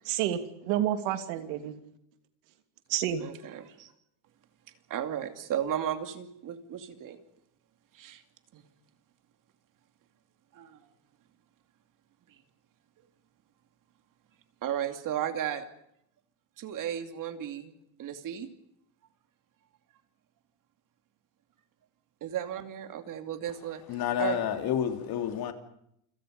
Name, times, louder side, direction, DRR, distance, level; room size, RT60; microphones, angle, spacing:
voice 1, 0.1-1.7 2.9-3.2, right 11 dB, 85° right, 2.9 m, -29 dB
voice 2, 3.2-3.9 4.9-7.2 7.9-8.2 8.5-8.6 10.5-10.8 14.6-15.7 16.6-18.5 22.2-23.8 24.2-24.4, right 10 dB, 45° right, 2.7 m, -34 dB
voice 3, 23.9-25.5, left 9 dB, 50° left, 3.2 m, -29 dB
29.0 x 26.0 x 5.3 m
cardioid pair, 150°, 46 cm